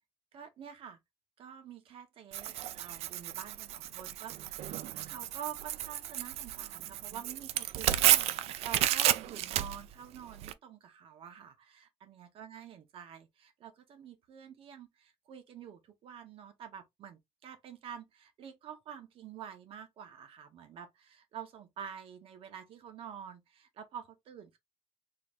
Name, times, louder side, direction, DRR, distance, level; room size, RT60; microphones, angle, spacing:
voice 1, 0.3-1.0 1.4-4.8 5.1-24.6, right 8 dB, 65° right, 1.1 m, -48 dB
Tearing, 2.3-10.5, right 13 dB, 90° right, 0.4 m, -32 dB
3.9 x 3.3 x 2.5 m
cardioid pair, 140°, 10 cm